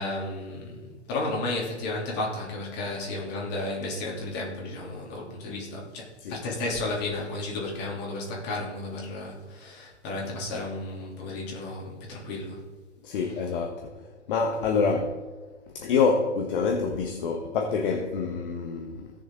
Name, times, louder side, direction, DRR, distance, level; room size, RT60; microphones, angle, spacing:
voice 1, 0.0-12.6, left 2 dB, 30° left, 3.3 m, -33 dB
voice 2, 13.0-13.9 14.3-15.2 15.7-19.1, left 5 dB, 50° left, 1.3 m, -26 dB
17.0 x 6.8 x 3.9 m
figure-of-eight pair, 120°, 35 cm